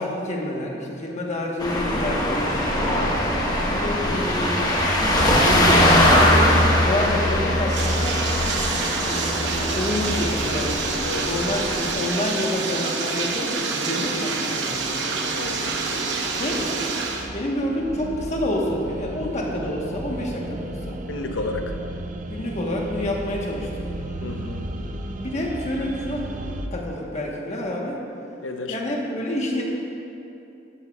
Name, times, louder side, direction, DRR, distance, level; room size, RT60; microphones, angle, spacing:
voice 1, 0.0-2.6 3.7-8.2 9.0-10.9 11.2-15.1 16.4-16.9 17.3-21.0 22.3-24.0 25.2-26.3 26.7-28.0 28.7-29.6, left 1 dB, 35° left, -1 dB, 1.2 m, -28 dB
sound 1, 1.6-11.9, left 1 dB, 20° left, 1.1 m, -21 dB
voice 2, 2.7-3.1 11.0-11.3 15.3-15.7 21.1-21.8 24.2-24.7 28.4-28.8, left 3 dB, 80° left, 5 dB, 0.7 m, -32 dB
Bathtub (filling or washing), 7.5-17.3, right 4 dB, 65° right, 0.9 m, -27 dB
sound 2, 11.2-26.7, right 1 dB, 40° right, 0.5 m, -36 dB
12.0 x 11.0 x 2.4 m, 2.8 s
head